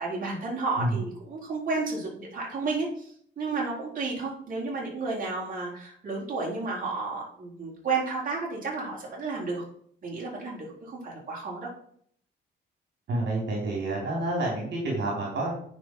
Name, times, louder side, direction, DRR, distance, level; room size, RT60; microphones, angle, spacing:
voice 1, 0.0-9.6 10.0-11.7, right 3 dB, 45° right, -4 dB, 4.3 m, -32 dB
voice 2, 13.1-15.5, right 2 dB, 65° right, -3 dB, 3.8 m, -29 dB
9.4 x 6.0 x 4.6 m, 0.63 s
cardioid pair, 90°, 20 cm